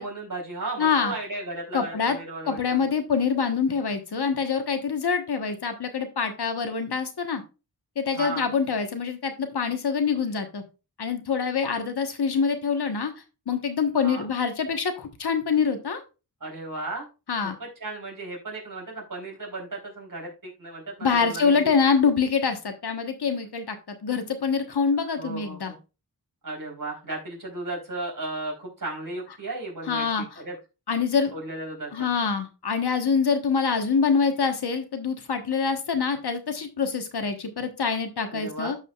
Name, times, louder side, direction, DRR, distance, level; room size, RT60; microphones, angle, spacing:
voice 1, 0.0-2.8 8.1-8.5 14.0-14.3 16.4-17.1 17.4-21.7 25.2-25.8 26.4-30.5 31.3-32.1 38.3-38.8, right 2 dB, 55° right, -1 dB, 3.8 m, -35 dB
voice 2, 0.8-1.1 1.7-2.2 2.5-7.4 8.0-10.6 11.0-13.1 13.5-16.0 17.3-17.6 21.0-25.7 29.9-30.4 30.9-31.3 31.9-38.8, left 5 dB, 80° left, 7 dB, 1.2 m, -25 dB
13.5 x 5.0 x 2.3 m, 0.29 s
wide cardioid pair, 65°, 39 cm